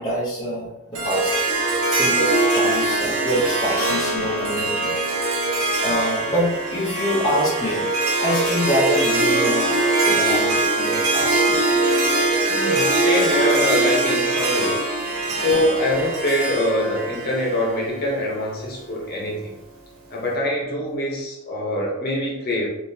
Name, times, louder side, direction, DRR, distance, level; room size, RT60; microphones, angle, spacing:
voice 1, 0.0-1.4 1.9-4.9 5.8-7.9 8.2-9.7 10.0-11.8 15.3-15.4, equal, 20° left, -8 dB, 0.7 m, -25 dB
Harp, 0.9-18.2, right 2 dB, 85° right, 0.8 m, -22 dB
voice 2, 12.3-14.8 15.3-19.5 20.1-22.7, left 1 dB, 45° left, -3 dB, 0.9 m, -24 dB
3.6 x 2.6 x 2.7 m, 0.91 s
head